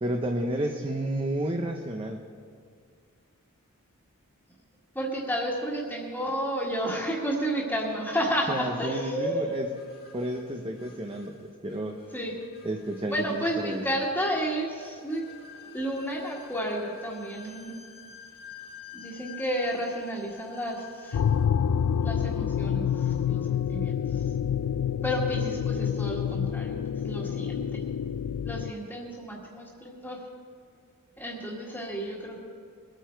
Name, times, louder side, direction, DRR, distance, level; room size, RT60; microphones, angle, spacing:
voice 1, 0.0-2.2 8.5-9.7 10.1-11.4 11.6-12.0 12.6-13.8, right 1 dB, 25° right, 2 dB, 0.7 m, -31 dB
voice 2, 4.9-9.6 12.1-12.3 13.1-15.3 15.7-17.7 18.9-21.2 22.0-24.2 25.0-26.8 27.0-27.8 28.4-30.2 31.2-32.4, equal, 10° left, -7 dB, 1.8 m, -31 dB
sound 1, 9.5-21.4, left 6 dB, 45° left, 1.8 m, -49 dB
sound 2, 21.1-28.7, left 8 dB, 80° left, 0.4 m, -28 dB
22.5 x 9.1 x 4.6 m, 2.1 s
head